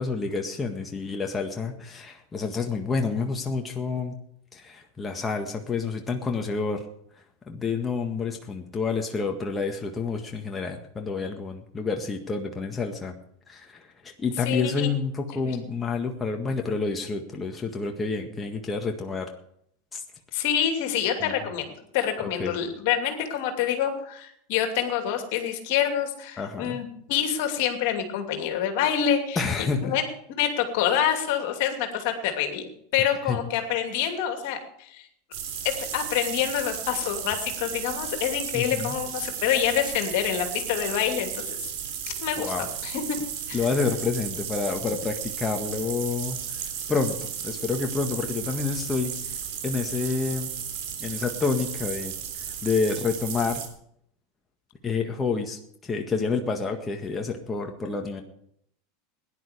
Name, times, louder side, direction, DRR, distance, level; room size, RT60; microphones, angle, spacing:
voice 1, 0.0-4.1 4.5-6.8 7.5-13.1 13.5-19.3 19.9-20.0 21.2-21.3 22.2-22.5 26.4-26.8 29.3-29.9 33.3-33.4 38.5-39.0 42.4-42.7 43.5-50.5 51.0-52.1 52.6-53.6 54.8-58.2, left 4 dB, 20° left, 3 dB, 1.7 m, -29 dB
voice 2, 14.5-14.9 20.3-29.4 29.8-30.0 30.4-32.6 32.9-35.1 35.6-41.4 42.2-42.5 42.8-43.2 43.5-43.6, left 9 dB, 65° left, 5 dB, 2.6 m, -26 dB
sound 1, 35.3-53.7, right 8 dB, 65° right, 3.3 m, -34 dB
16.5 x 11.0 x 5.1 m, 0.70 s
hypercardioid pair, 95°, 0 cm